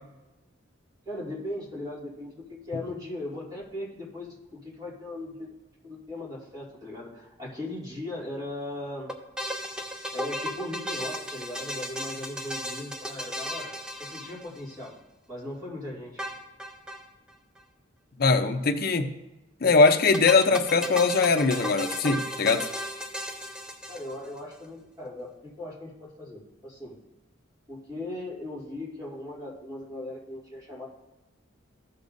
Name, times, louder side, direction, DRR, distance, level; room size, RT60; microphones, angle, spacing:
voice 1, 1.1-5.5 5.8-9.1 10.0-13.7 14.0-14.9 15.3-16.2 23.9-27.0 27.7-30.9, left 1 dB, 20° right, -7 dB, 2.4 m, -38 dB
sound 1, 9.1-14.9 16.2-17.0 17.3-17.4 17.6-17.7 19.9-24.4, equal, 5° right, 0.6 m, -35 dB
voice 2, 18.2-19.1 19.6-22.7, left 4 dB, 50° left, 6 dB, 0.6 m, -21 dB
14.0 x 6.7 x 2.6 m, 1.1 s
head